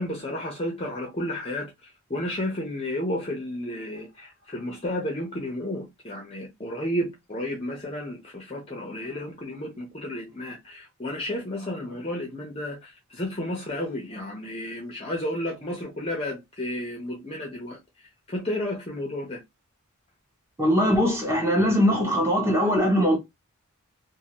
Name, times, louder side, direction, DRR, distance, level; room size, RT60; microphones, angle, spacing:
voice 1, 0.0-1.7 2.1-17.8 18.3-19.4, left 1 dB, 25° left, 0.7 m, -32 dB
voice 2, 20.6-23.2, equal, 10° right, 0.9 m, -21 dB
2.6 x 2.6 x 2.9 m
head